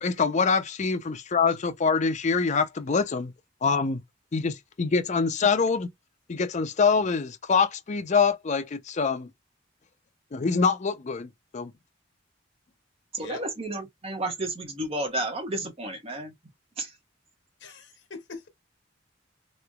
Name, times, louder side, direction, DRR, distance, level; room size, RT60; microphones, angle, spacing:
voice 1, 0.0-3.3 3.6-4.0 4.3-5.9 6.3-9.3 10.3-11.7, left 5 dB, 40° left, 0.5 m, -25 dB
voice 2, 13.1-16.3 16.8-16.9, right 1 dB, 30° right, 1.1 m, -32 dB
voice 3, 17.6-18.5, left 3 dB, 75° left, 1.0 m, -41 dB
3.1 x 2.9 x 2.2 m
head